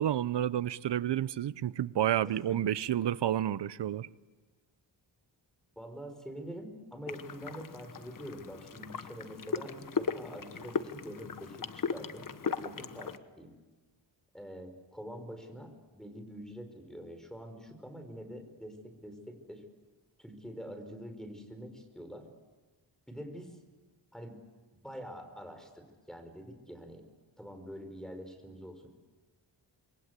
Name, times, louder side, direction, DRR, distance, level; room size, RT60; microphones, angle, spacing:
voice 1, 0.0-4.1, right 11 dB, 70° right, 0.8 m, -30 dB
voice 2, 5.8-12.3 12.6-13.6 14.3-19.6 20.2-22.3 23.1-23.6 24.1-24.4 24.8-27.0 27.4-28.9, equal, ahead, 5.2 m, -45 dB
sound 1, 7.1-13.2, left 6 dB, 45° left, 1.3 m, -37 dB
27.0 x 23.0 x 8.3 m
cardioid pair, 90°, 44 cm